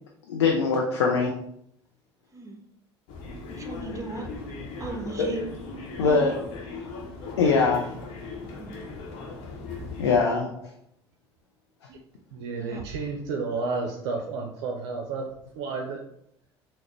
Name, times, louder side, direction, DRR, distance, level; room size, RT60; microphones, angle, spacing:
voice 1, 0.3-1.3 5.2-5.3 6.0-6.3 7.4-7.9 10.0-10.5, left 4 dB, 85° left, 1 dB, 0.4 m, -22 dB
sound 1, 3.1-10.2, left 3 dB, 65° left, 0.8 m, -38 dB
voice 2, 3.5-4.3 4.8-6.3 8.5-8.8 12.6-13.1, right 3 dB, 20° right, 3 dB, 0.7 m, -37 dB
voice 3, 12.3-15.2 15.5-16.0, right 4 dB, 70° right, 2 dB, 0.4 m, -31 dB
3.9 x 2.1 x 3.0 m, 0.74 s
hypercardioid pair, 60°, 14 cm